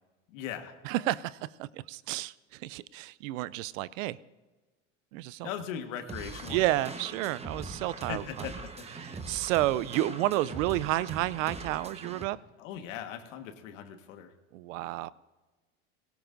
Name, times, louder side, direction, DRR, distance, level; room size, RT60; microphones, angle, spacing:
voice 1, 0.3-0.7 5.4-6.7 8.1-8.8 12.6-14.3, left 9 dB, 75° left, 7 dB, 1.6 m, -39 dB
voice 2, 0.8-4.2 5.1-5.5 6.5-8.5 9.0-12.4 14.5-15.1, right 16 dB, 80° right, 20 dB, 0.6 m, -31 dB
sound 1, 6.1-12.2, right 3 dB, 15° right, 1.1 m, -42 dB
17.5 x 17.5 x 2.6 m, 1.2 s
hypercardioid pair, 90°, 39 cm